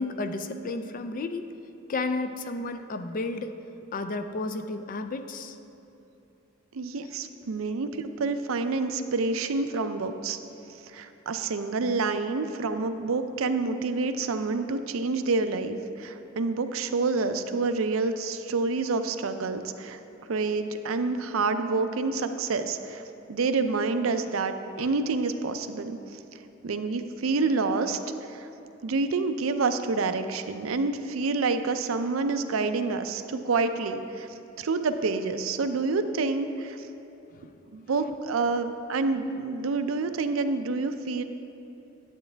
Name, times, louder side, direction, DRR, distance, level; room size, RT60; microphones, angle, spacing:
voice 1, 0.0-1.5 1.9-3.5 3.9-5.6 24.8-24.9 37.4-37.5, left 3 dB, 40° left, 8 dB, 0.4 m, -32 dB
voice 2, 6.7-10.4 10.9-20.0 20.3-23.0 23.3-26.2 26.6-28.0 28.3-28.5 28.8-34.3 34.6-36.9 37.7-41.2, right 3 dB, 75° right, 9 dB, 0.5 m, -28 dB
9.3 x 8.8 x 3.3 m, 3.0 s
head